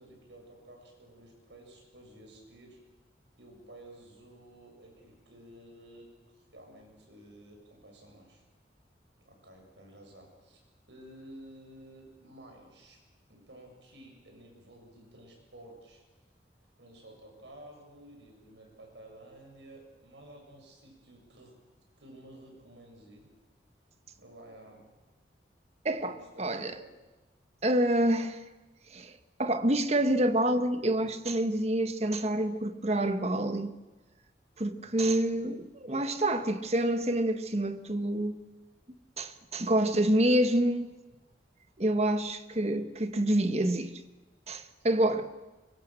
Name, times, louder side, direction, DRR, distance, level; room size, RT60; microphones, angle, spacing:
voice 1, 0.0-2.8 3.4-8.4 9.2-10.6 10.9-13.0 13.3-16.0 16.8-21.6 22.0-23.3 24.2-24.8 25.9-26.9 34.8-35.3, right 1 dB, 80° right, 7.7 m, -52 dB
voice 2, 25.8-26.7 27.6-28.4 28.9-29.1 29.4-33.7 34.6-38.4 39.2-40.9 41.8-43.9 44.5-45.3, right 1 dB, 35° right, 1.4 m, -27 dB
25.0 x 23.0 x 7.7 m
head